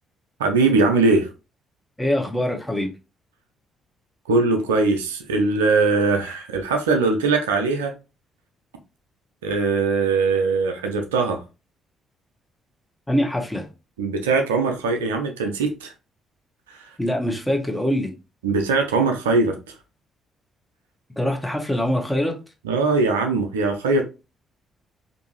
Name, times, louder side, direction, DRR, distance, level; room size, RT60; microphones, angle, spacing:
voice 1, 0.4-1.3 4.3-7.9 9.4-11.4 14.0-15.9 16.7-17.0 18.4-19.7 22.6-24.0, right 3 dB, 85° right, 0.4 m, -21 dB
voice 2, 2.0-2.9 13.1-13.7 17.0-18.1 21.2-22.3, left 1 dB, 10° left, 1.0 m, -23 dB
2.6 x 2.6 x 2.9 m
hypercardioid pair, 45°, 0 cm